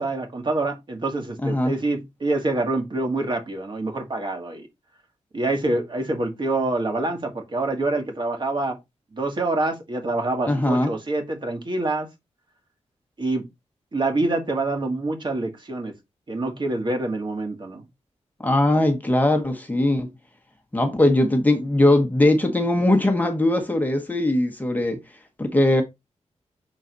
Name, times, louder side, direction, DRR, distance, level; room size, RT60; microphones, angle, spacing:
voice 1, 0.0-4.7 5.3-8.8 9.1-12.1 13.2-13.4 13.9-15.9 16.3-17.9, right 2 dB, 40° right, 1.9 m, -26 dB
voice 2, 1.4-1.7 10.5-10.9 18.4-20.1 20.7-25.0 25.4-25.8, left 1 dB, 15° left, 1.2 m, -20 dB
6.5 x 4.0 x 4.0 m
wide cardioid pair, 120°, 12 cm